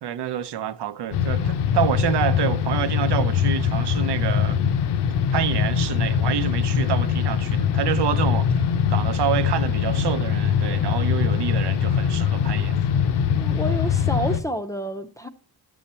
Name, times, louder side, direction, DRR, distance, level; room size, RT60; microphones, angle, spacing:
voice 1, 0.0-4.6 5.3-8.5 8.9-12.8, right 10 dB, 85° right, 0.8 m, -27 dB
sound 1, 1.1-14.4, left 7 dB, 80° left, 0.8 m, -22 dB
voice 2, 13.4-15.3, right 1 dB, 10° left, 0.6 m, -29 dB
11.5 x 7.2 x 4.3 m
wide cardioid pair, 165°, 39 cm